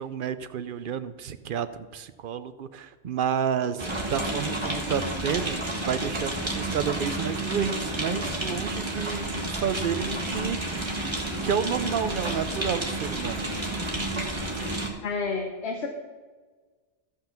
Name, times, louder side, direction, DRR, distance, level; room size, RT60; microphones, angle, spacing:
voice 1, 0.0-11.1 11.4-13.5, right 7 dB, 60° right, 12 dB, 0.7 m, -30 dB
sound 1, 3.8-14.9, right 1 dB, 25° right, 1.5 m, -30 dB
voice 2, 15.0-15.9, left 4 dB, 65° left, 3 dB, 1.2 m, -30 dB
14.5 x 5.7 x 5.8 m, 1.4 s
omnidirectional pair, 1.2 m